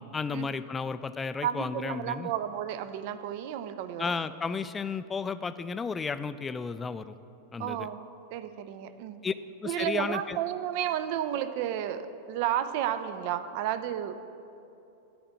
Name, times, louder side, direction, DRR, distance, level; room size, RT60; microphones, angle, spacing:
voice 1, 0.0-2.3 4.0-7.2 7.5-7.9 9.2-9.3 9.6-10.4, left 5 dB, 15° left, 13 dB, 0.3 m, -33 dB
voice 2, 1.4-4.1 7.6-8.0 8.3-9.2 9.6-14.2, right 10 dB, 45° right, 11 dB, 0.5 m, -32 dB
10.0 x 4.4 x 7.4 m, 2.8 s
figure-of-eight pair, 90°, 0 cm